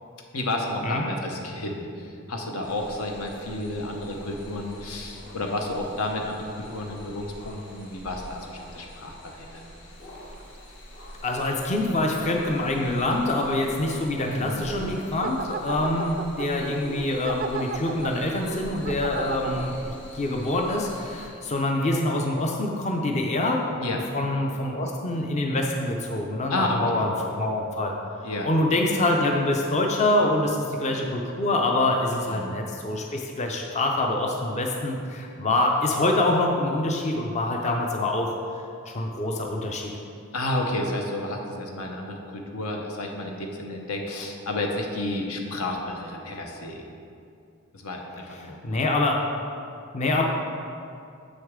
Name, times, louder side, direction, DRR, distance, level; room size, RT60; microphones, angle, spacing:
voice 1, 0.3-9.6 14.2-14.6 23.8-24.0 26.5-27.0 28.2-28.5 32.1-32.6 40.3-46.8 47.7-48.0 48.3-48.8, left 1 dB, 80° left, 2 dB, 0.9 m, -31 dB
sound 1, 2.6-21.3, equal, 60° left, 1.4 m, -44 dB
sound 2, 10.1-10.4 13.5-13.6 14.2-19.8 20.4-20.5 20.9-21.0, right 5 dB, 40° right, 0.3 m, -35 dB
voice 2, 11.2-23.6 24.1-27.9 28.4-38.4 38.9-39.9 48.4-49.2 49.9-50.2, left 2 dB, 35° left, 1 dB, 0.5 m, -25 dB
7.2 x 6.4 x 3.6 m, 2.5 s
head